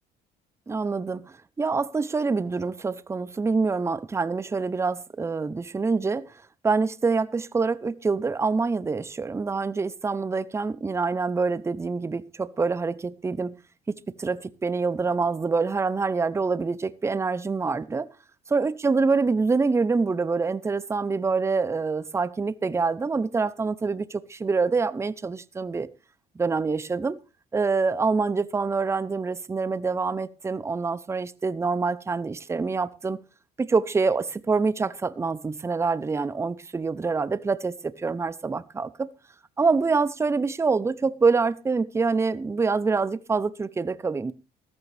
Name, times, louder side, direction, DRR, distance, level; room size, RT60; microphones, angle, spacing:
voice 1, 0.7-6.3 6.6-13.5 13.9-18.1 18.5-25.9 26.4-27.2 27.5-33.2 33.6-39.1 39.6-44.3, right 4 dB, 15° right, 0.6 m, -26 dB
13.5 x 13.5 x 3.3 m
cardioid pair, 110°, 17 cm